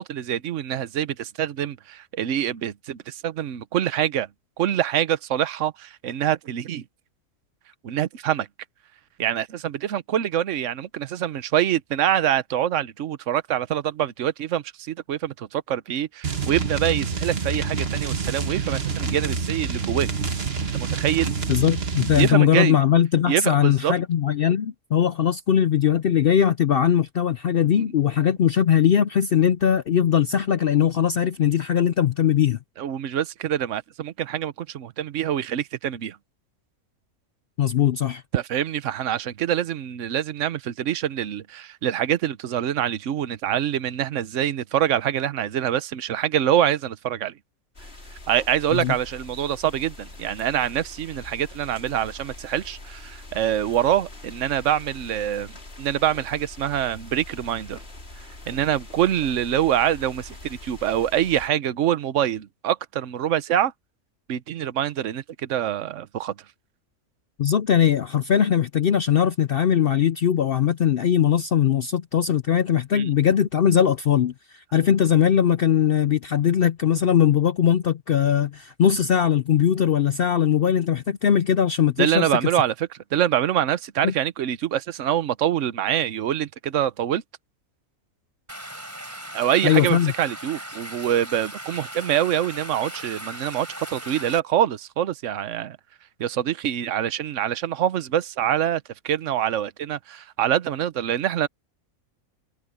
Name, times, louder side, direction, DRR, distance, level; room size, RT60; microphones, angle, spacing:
voice 1, 0.0-4.3 4.6-6.8 7.8-8.5 9.2-20.1 20.8-21.3 22.2-22.8 23.3-23.9 27.7-27.8 32.8-36.2 38.3-47.3 48.3-55.5 55.8-57.8 58.5-63.7 64.3-66.3 72.9-73.1 82.0-87.2 89.3-95.8 96.2-101.5, right 11 dB, 60° right, 1.1 m, -25 dB
sound 1, 16.2-22.4, right 5 dB, 45° right, 1.6 m, -27 dB
voice 2, 21.5-32.6 37.6-38.2 48.7-48.9 67.4-82.3 84.0-84.1 89.6-90.1, left 9 dB, 65° left, 0.5 m, -20 dB
sound 2, 47.7-61.5, left 2 dB, 40° left, 3.7 m, -43 dB
Stream, 88.5-94.4, equal, 10° right, 3.8 m, -38 dB
omnidirectional pair, 1.6 m